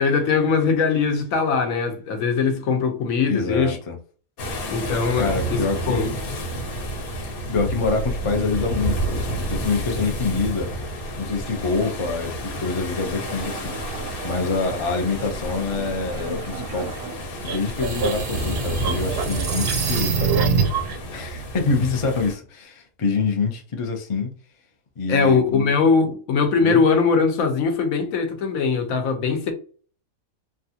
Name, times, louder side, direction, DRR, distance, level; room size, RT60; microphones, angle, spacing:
voice 1, 0.0-3.8 4.7-6.1 25.1-29.5, left 5 dB, 70° left, 1.1 m, -21 dB
voice 2, 3.3-4.0 5.2-6.1 7.2-10.7 11.2-16.9 17.4-20.7 21.1-24.3 25.0-25.7 26.6-26.8, left 4 dB, 50° left, 0.3 m, -26 dB
sound 1, 4.4-22.3, right 1 dB, 85° left, 1.4 m, -30 dB
sound 2, 12.6-17.4, right 6 dB, 90° right, 1.1 m, -38 dB
sound 3, 17.4-20.9, right 6 dB, 60° right, 0.6 m, -24 dB
3.3 x 2.3 x 2.7 m
omnidirectional pair, 1.5 m